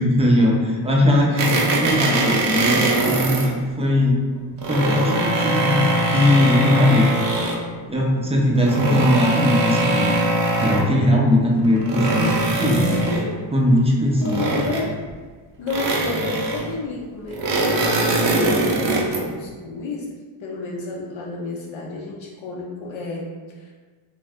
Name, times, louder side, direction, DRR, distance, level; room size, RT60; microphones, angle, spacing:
voice 1, 0.0-4.2 4.7-7.2 7.9-10.2 10.6-13.0 13.5-14.6, left 1 dB, 15° right, -2 dB, 0.4 m, -19 dB
sound 1, 1.4-3.5 4.4-7.7 8.5-10.9 11.6-13.3 14.2-15.1 15.7-16.7 17.3-19.3, right 2 dB, 60° right, 0.6 m, -22 dB
voice 2, 12.6-13.5 14.2-15.0 15.6-20.1 20.4-23.7, left 3 dB, 70° left, -3 dB, 0.6 m, -31 dB
2.6 x 2.3 x 3.4 m, 1.4 s
cardioid pair, 110°, 49 cm